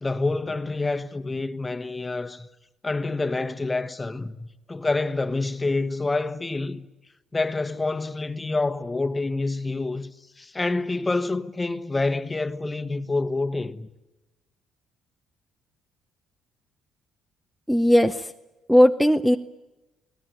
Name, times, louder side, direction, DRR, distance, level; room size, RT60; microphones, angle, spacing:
voice 1, 0.0-2.5 2.8-6.9 7.3-10.1 10.4-13.9, left 3 dB, 20° left, 1.3 m, -27 dB
voice 2, 17.7-18.3 18.7-19.4, equal, ahead, 0.8 m, -17 dB
29.5 x 18.5 x 9.0 m
cardioid pair, 100°, 0 cm